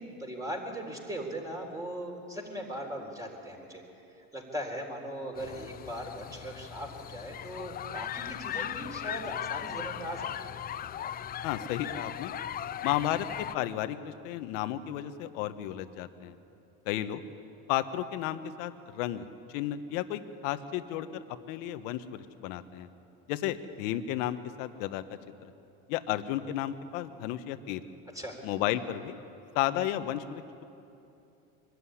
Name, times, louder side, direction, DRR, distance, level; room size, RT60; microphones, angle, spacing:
voice 1, 0.0-3.8 4.3-10.5 28.1-28.4, equal, 10° right, 1 dB, 3.9 m, -39 dB
sound 1, 5.4-13.6, left 10 dB, 25° left, 0.4 m, -38 dB
voice 2, 11.4-12.3 12.8-16.3 16.8-17.2 17.7-22.9 23.3-25.0 25.9-27.8 28.4-29.2 29.5-30.6, left 12 dB, 70° left, 11 dB, 1.3 m, -33 dB
23.5 x 13.0 x 9.9 m, 2.7 s
supercardioid pair, 115°, 39 cm